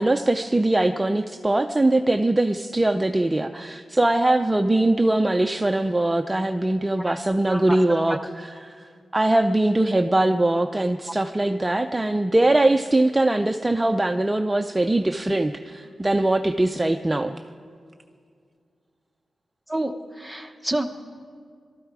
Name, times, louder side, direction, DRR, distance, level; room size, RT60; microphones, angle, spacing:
voice 1, 0.0-17.4, right 2 dB, 15° right, 7 dB, 0.5 m, -22 dB
voice 2, 7.5-8.2 19.7-20.9, right 1 dB, ahead, 6 dB, 1.0 m, -29 dB
22.5 x 13.0 x 4.8 m, 2.2 s
wide cardioid pair, 120°, 0 cm